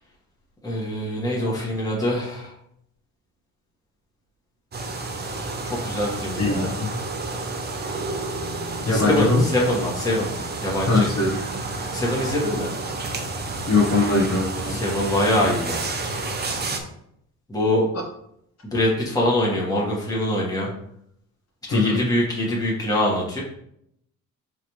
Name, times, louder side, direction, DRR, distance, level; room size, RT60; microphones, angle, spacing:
voice 1, 0.6-2.5 5.6-6.7 8.9-10.3 10.6-11.1 11.9-12.7 14.7-15.9 17.5-17.9 18.6-20.7 21.7-23.4, left 1 dB, 10° left, -5 dB, 1.7 m, -24 dB
sound 1, 4.7-16.8, right 3 dB, 30° right, 0.7 m, -30 dB
voice 2, 6.4-6.9 8.8-9.4 10.9-11.4 13.7-14.8 21.7-22.0, left 3 dB, 50° left, -4 dB, 1.3 m, -21 dB
4.7 x 3.5 x 3.2 m, 0.72 s
cardioid pair, 105°, 35 cm